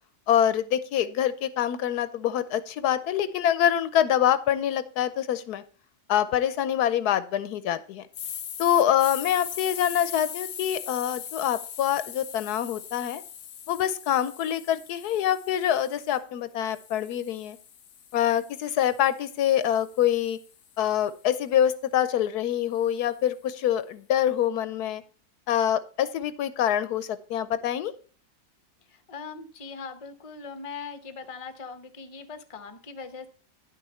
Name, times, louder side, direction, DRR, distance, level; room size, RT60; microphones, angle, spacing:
voice 1, 0.3-5.6 6.1-8.0 8.6-13.2 13.7-17.6 18.1-20.4 20.8-25.0 25.5-27.9, left 10 dB, 90° left, 13 dB, 1.3 m, -25 dB
sound 1, 8.1-16.2 16.7-20.9, left 9 dB, 60° left, 1.0 m, -41 dB
voice 2, 28.9-33.3, left 5 dB, 30° left, 9 dB, 0.7 m, -40 dB
10.5 x 6.4 x 4.3 m, 0.40 s
omnidirectional pair, 1.6 m